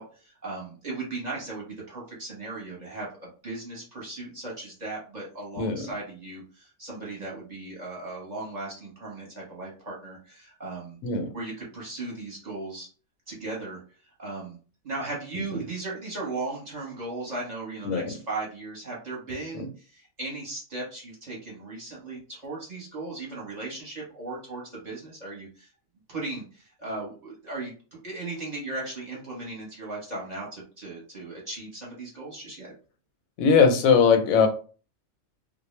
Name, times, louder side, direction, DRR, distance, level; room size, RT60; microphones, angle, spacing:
voice 1, 0.0-11.0 11.3-12.9 13.3-13.8 14.2-14.6 14.8-25.7 26.1-27.8 28.0-32.7, right 2 dB, 35° right, -4 dB, 0.8 m, -37 dB
voice 2, 5.6-5.9 11.0-11.3 17.8-18.1 33.4-34.5, left 6 dB, 85° left, 6 dB, 1.0 m, -20 dB
2.3 x 2.0 x 3.1 m, 0.37 s
omnidirectional pair, 1.4 m